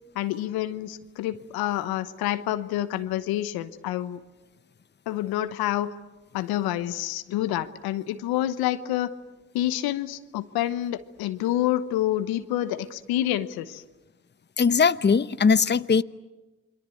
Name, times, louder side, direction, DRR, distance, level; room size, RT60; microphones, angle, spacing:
voice 1, 0.1-4.2 5.1-5.9 6.3-9.1 9.5-13.8, left 13 dB, 85° left, 12 dB, 1.1 m, -28 dB
voice 2, 14.6-16.0, left 5 dB, 30° left, 15 dB, 0.9 m, -20 dB
28.5 x 22.5 x 8.5 m, 1.1 s
hypercardioid pair, 45°, 36 cm